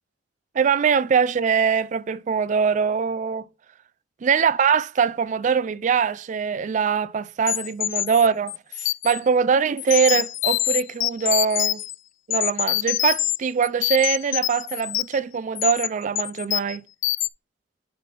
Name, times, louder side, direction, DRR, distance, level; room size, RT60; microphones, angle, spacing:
voice 1, 0.6-3.5 4.2-11.8 12.3-16.8, right 6 dB, 40° right, 0.3 m, -22 dB
sound 1, 7.5-9.2 9.8-12.0 12.3-13.4 13.6-15.2 15.6-15.9 16.2-16.8 17.0-17.3, left 14 dB, 85° left, 0.4 m, -25 dB
7.9 x 3.3 x 5.8 m
head